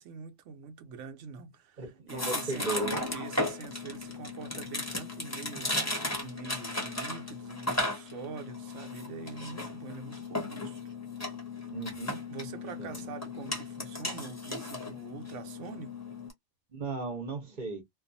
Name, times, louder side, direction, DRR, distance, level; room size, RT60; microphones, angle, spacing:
voice 1, 0.0-10.8 12.3-16.0, right 6 dB, 75° right, 1.0 m, -44 dB
voice 2, 1.8-3.0 11.7-12.2 12.8-13.0 16.7-17.8, right 3 dB, 45° right, 0.9 m, -36 dB
sound 1, 2.1-16.3, left 2 dB, 15° left, 0.8 m, -36 dB
2.5 x 2.3 x 2.6 m
omnidirectional pair, 1.3 m